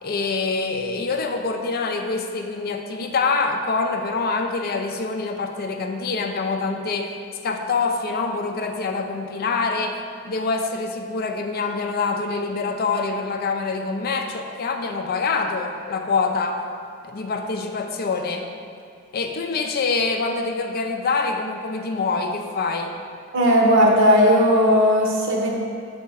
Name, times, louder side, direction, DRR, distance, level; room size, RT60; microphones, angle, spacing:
voice 1, 0.0-7.1 7.4-16.6 17.0-18.5 19.1-22.9, left 4 dB, 50° left, 5 dB, 0.4 m, -25 dB
voice 2, 23.3-25.5, equal, 65° right, -2 dB, 1.0 m, -16 dB
6.5 x 3.4 x 4.7 m, 2.3 s
head